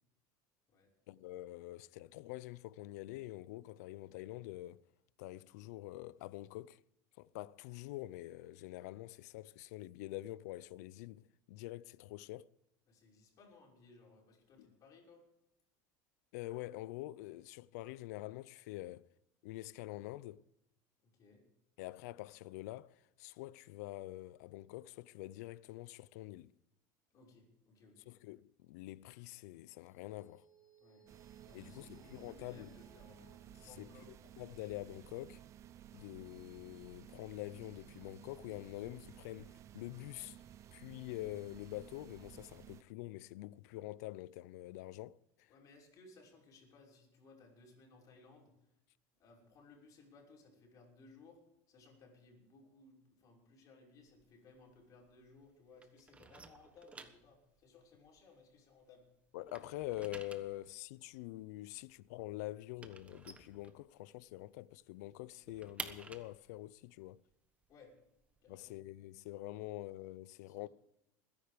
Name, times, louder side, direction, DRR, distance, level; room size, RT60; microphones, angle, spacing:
voice 1, 1.1-4.8 5.2-6.8 7.2-12.5 14.6-14.7 16.3-19.1 19.4-20.4 21.8-26.6 28.1-30.5 31.5-32.7 33.6-33.9 34.4-35.4 35.9-40.4 40.7-45.5 59.3-67.2 68.5-70.7, left 17 dB, 85° left, 0.6 m, -46 dB
voice 2, 12.9-15.2 21.0-21.4 27.1-28.1 30.8-31.0 31.4-34.1 45.5-48.5 49.2-51.4 51.7-59.0 67.7-67.9 68.4-68.8 70.5-70.6, left 3 dB, 40° left, 6.0 m, -61 dB
sound 1, 29.8-44.6, right 4 dB, 15° left, 7.8 m, -71 dB
sound 2, 31.1-42.8, right 11 dB, 35° right, 0.6 m, -56 dB
sound 3, 54.0-55.5 55.8-59.0 59.3-64.3 64.6-64.7 65.0-68.7, right 4 dB, 15° right, 1.3 m, -52 dB
21.5 x 10.5 x 5.2 m
cardioid pair, 140°, 9 cm